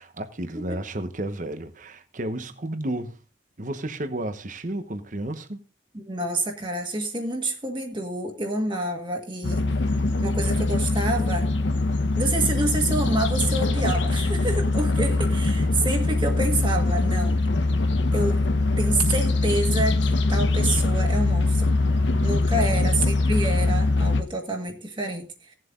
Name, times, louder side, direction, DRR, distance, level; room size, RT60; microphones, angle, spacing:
voice 1, 0.0-3.2 3.6-5.6 22.5-23.2, right 1 dB, 45° right, 1.1 m, -32 dB
voice 2, 5.9-9.7 10.2-11.5 12.1-17.4 18.1-18.4 18.8-21.7 22.2-25.6, right 2 dB, 25° right, 1.9 m, -28 dB
sound 1, 9.4-24.2, left 2 dB, 90° left, 1.1 m, -22 dB
17.5 x 7.6 x 3.8 m
head